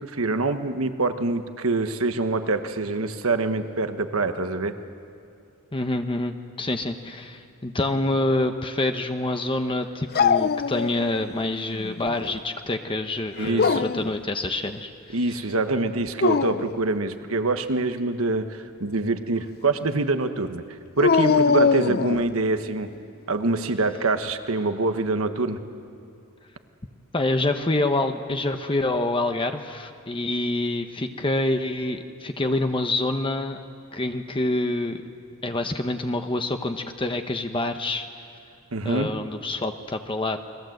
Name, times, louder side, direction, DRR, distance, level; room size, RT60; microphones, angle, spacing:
voice 1, 0.0-4.7 13.4-13.8 15.1-20.6 21.0-22.9 23.3-25.6 38.7-39.1, right 2 dB, 85° right, 8 dB, 1.3 m, -25 dB
voice 2, 5.7-15.4 27.1-33.6 33.9-35.0 35.4-38.1 38.8-40.4, left 2 dB, 25° left, 6 dB, 1.0 m, -26 dB
Dog, 10.1-11.3 11.7-12.4 13.4-14.1 16.1-16.7 21.0-22.3, left 5 dB, 50° left, 0.5 m, -22 dB
29.5 x 21.5 x 7.9 m, 2.4 s
head